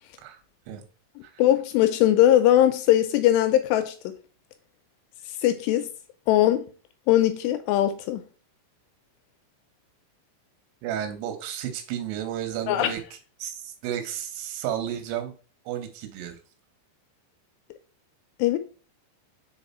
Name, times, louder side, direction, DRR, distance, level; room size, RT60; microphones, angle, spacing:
voice 1, 1.4-4.2 5.4-5.9 6.3-6.7 7.1-8.2 12.7-12.9 18.4-18.6, left 12 dB, 85° left, 2.5 m, -20 dB
voice 2, 10.8-13.0 13.4-15.3 15.7-16.4, right 10 dB, 85° right, 3.2 m, -32 dB
6.1 x 4.2 x 4.1 m
omnidirectional pair, 5.2 m